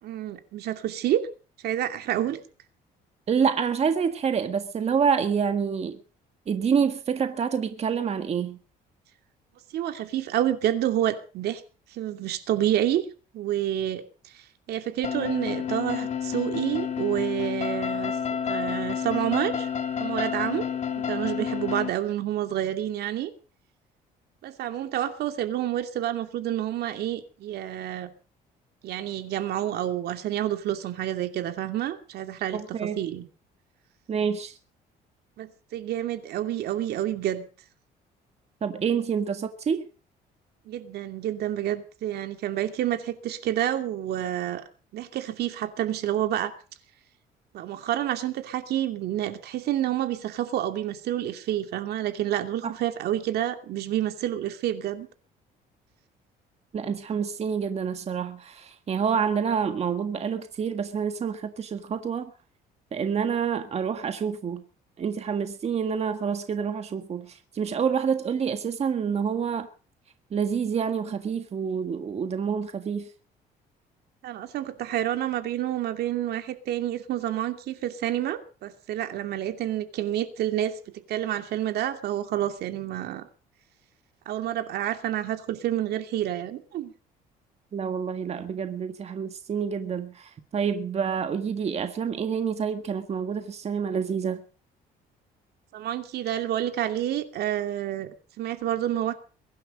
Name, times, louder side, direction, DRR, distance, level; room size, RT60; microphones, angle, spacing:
voice 1, 0.0-1.3 1.6-2.4 9.7-11.6 11.9-13.1 13.3-18.1 18.4-19.7 20.0-20.7 21.0-23.3 24.4-28.1 28.8-33.3 35.4-37.4 40.7-44.6 44.9-46.5 47.5-55.1 74.2-80.8 81.1-83.3 84.3-86.9 95.7-99.1, right 12 dB, 70° right, 2.6 m, -29 dB
voice 2, 3.3-6.0 6.5-8.6 32.5-33.0 34.1-34.6 38.6-39.9 52.6-52.7 56.7-62.3 62.9-64.6 65.0-69.7 70.3-73.1 87.7-94.4, right 6 dB, 40° right, 1.7 m, -27 dB
sound 1, 15.0-21.9, left 7 dB, 45° left, 2.0 m, -30 dB
22.5 x 11.5 x 5.2 m
cardioid pair, 110°, 17 cm